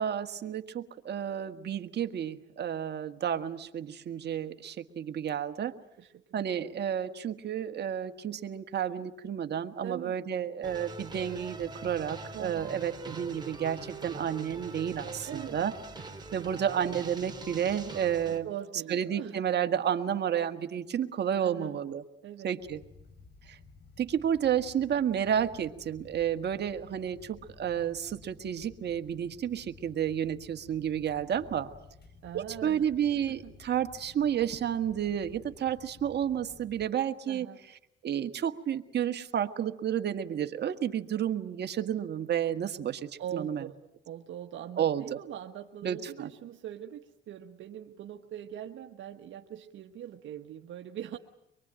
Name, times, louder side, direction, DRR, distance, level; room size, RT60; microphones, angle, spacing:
voice 1, 0.0-5.7 6.3-15.7 16.3-18.5 18.9-22.0 22.4-22.8 23.5-23.6 24.0-31.7 32.3-37.5 38.0-43.6 44.8-45.0 45.8-46.3, right 9 dB, 60° right, 7 dB, 1.6 m, -31 dB
voice 2, 6.0-6.4 9.8-10.2 12.3-12.7 15.3-15.6 18.4-19.4 21.4-21.8 22.2-22.5 32.2-32.9 33.1-33.5 37.3-37.6 43.2-43.7 44.1-51.2, right 10 dB, 75° right, 5 dB, 1.3 m, -42 dB
sound 1, 10.6-18.4, right 3 dB, 20° right, 3.3 m, -43 dB
sound 2, 22.6-36.9, left 4 dB, 55° left, 4.1 m, -55 dB
24.0 x 23.0 x 8.8 m, 0.82 s
cardioid pair, 90°, 20 cm